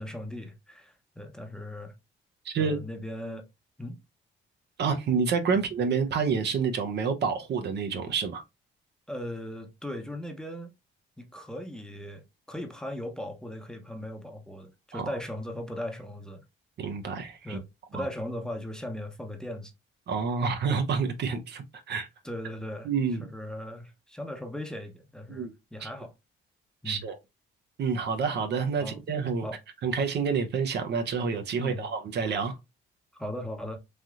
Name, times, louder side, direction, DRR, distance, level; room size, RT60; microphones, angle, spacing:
voice 1, 0.0-1.9 2.6-3.5 3.8-4.0 5.5-5.6 9.1-10.7 11.2-16.4 17.4-17.7 17.9-19.7 22.2-22.9 23.2-26.1 26.8-27.1 28.8-29.0 29.4-29.6 31.6-31.9 33.2-33.8, left 1 dB, 5° left, 0.7 m, -38 dB
voice 2, 2.4-2.8 4.8-8.4 14.9-15.1 16.8-17.6 17.9-18.0 20.1-22.1 22.8-23.2 25.3-25.5 25.8-25.9 26.8-27.1 27.8-29.5 29.8-32.6, right 5 dB, 60° right, 0.6 m, -28 dB
3.3 x 2.7 x 2.3 m
cardioid pair, 90°, 20 cm